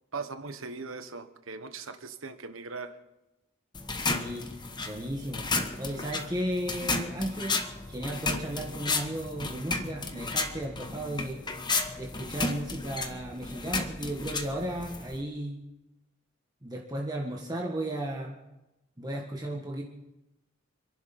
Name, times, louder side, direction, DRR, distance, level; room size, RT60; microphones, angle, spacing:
voice 1, 0.1-2.9, right 4 dB, 75° right, 9 dB, 1.3 m, -39 dB
sound 1, 3.7-15.2, left 3 dB, 20° left, 1.1 m, -33 dB
voice 2, 4.1-7.6 7.9-11.4 12.0-15.6 16.6-18.4 19.0-19.8, right 1 dB, 20° right, -1 dB, 1.6 m, -35 dB
28.5 x 11.5 x 4.3 m, 0.96 s
head